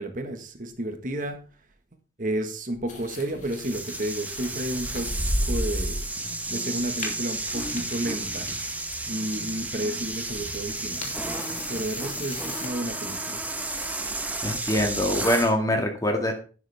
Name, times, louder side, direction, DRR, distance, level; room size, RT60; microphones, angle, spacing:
voice 1, 0.0-1.4 2.2-8.8 9.1-11.1 11.7-13.5, right 1 dB, 45° right, 6 dB, 1.5 m, -32 dB
sound 1, 2.9-12.7, left 4 dB, 40° left, 2.8 m, -43 dB
sound 2, 3.5-15.5, right 2 dB, 10° right, 1.1 m, -31 dB
voice 2, 14.4-16.3, left 1 dB, 20° left, 3 dB, 2.0 m, -24 dB
11.0 x 9.7 x 3.5 m, 0.36 s
head